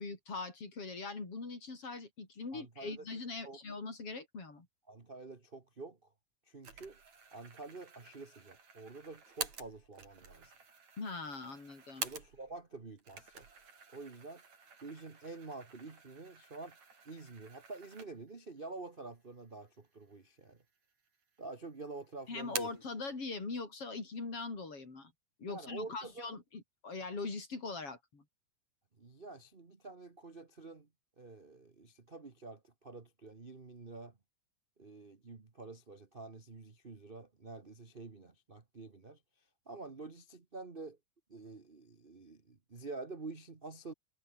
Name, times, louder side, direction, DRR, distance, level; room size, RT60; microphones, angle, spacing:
voice 1, 0.0-4.7 11.0-12.1 22.3-25.1 25.4-28.2, left 3 dB, 45° left, 6.0 m, -42 dB
voice 2, 2.5-3.0 3.4-3.6 4.9-6.1 6.5-7.0 7.3-10.5 12.0-13.5 13.9-14.4 14.8-16.8 17.0-20.6 21.4-22.7 25.5-26.3 29.0-30.9 31.2-34.2 34.8-41.0 41.3-43.9, right 3 dB, 40° right, 0.7 m, -48 dB
sound 1, 6.6-12.6 13.0-18.4 18.8-18.9 19.8-20.4 20.8-21.5 21.8-22.9, right 5 dB, 60° right, 5.6 m, -48 dB
omnidirectional pair, 3.7 m